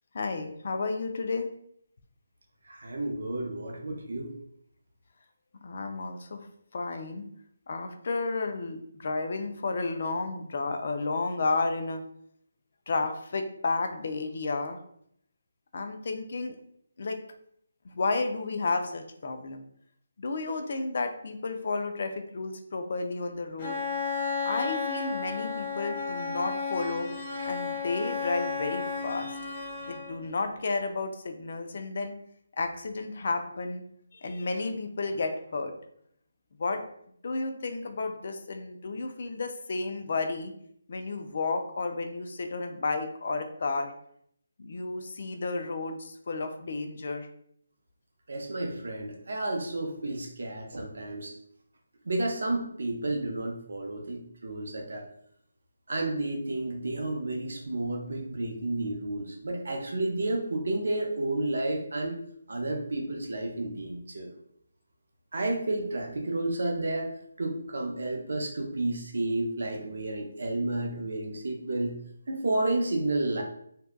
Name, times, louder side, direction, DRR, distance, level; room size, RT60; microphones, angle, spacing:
voice 1, 0.1-1.5 5.6-6.5 6.7-7.3 7.7-12.0 12.9-14.8 15.7-16.6 17.0-17.2 17.8-19.6 20.2-23.8 24.5-27.1 27.4-29.3 29.9-32.1 32.6-33.8 34.1-35.7 36.6-36.8 37.2-40.5 40.9-43.9 44.6-47.3, left 3 dB, 50° left, 5 dB, 0.3 m, -32 dB
voice 2, 2.7-4.3 48.3-51.3 52.1-55.1 55.9-62.2 62.5-64.3 65.3-67.1 67.4-72.0 72.3-73.4, right 2 dB, 70° right, 2 dB, 0.5 m, -31 dB
Bowed string instrument, 23.6-30.3, left 5 dB, 35° left, 0.8 m, -33 dB
2.6 x 2.2 x 2.2 m, 0.69 s
figure-of-eight pair, 165°, 0 cm